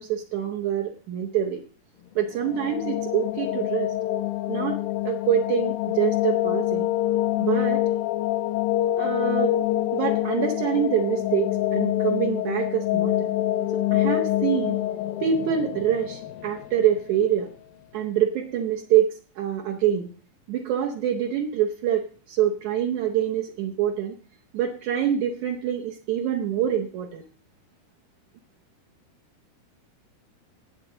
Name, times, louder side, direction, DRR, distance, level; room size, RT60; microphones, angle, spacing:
voice 1, 0.0-1.6 2.1-3.9 4.5-4.8 5.0-6.9 7.4-7.8 9.0-9.6 9.9-13.3 13.9-14.8 15.2-17.5 17.9-20.1 20.5-24.1 24.5-27.2, right 9 dB, 75° right, 2 dB, 1.7 m, -25 dB
sound 1, 2.2-17.2, left 14 dB, 80° left, 2.1 m, -26 dB
17.5 x 7.9 x 3.9 m, 0.42 s
omnidirectional pair, 4.5 m